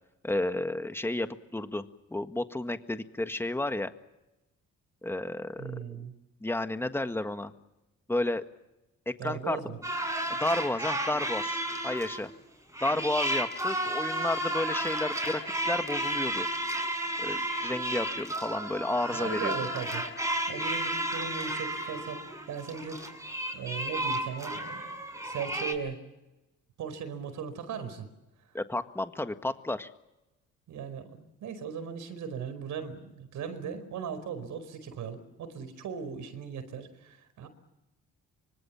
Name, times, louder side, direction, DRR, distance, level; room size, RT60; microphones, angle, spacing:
voice 1, 0.2-1.8 2.1-3.9 5.0-5.8 6.4-7.5 8.1-8.4 9.1-9.6 10.3-12.3 12.8-16.5 17.2-19.6 28.5-29.9, left 2 dB, 10° left, 8 dB, 1.6 m, -32 dB
voice 2, 5.6-6.1 9.2-9.8 19.1-20.1 20.5-23.1 23.5-25.0 25.2-26.0 26.8-28.1 28.4-28.5 30.7-37.5, right 6 dB, 75° right, 11 dB, 5.0 m, -38 dB
sound 1, 9.8-12.3 12.7-25.7, right 1 dB, 10° right, 6.1 m, -32 dB
25.0 x 25.0 x 7.5 m, 0.96 s
cardioid pair, 90°, 30 cm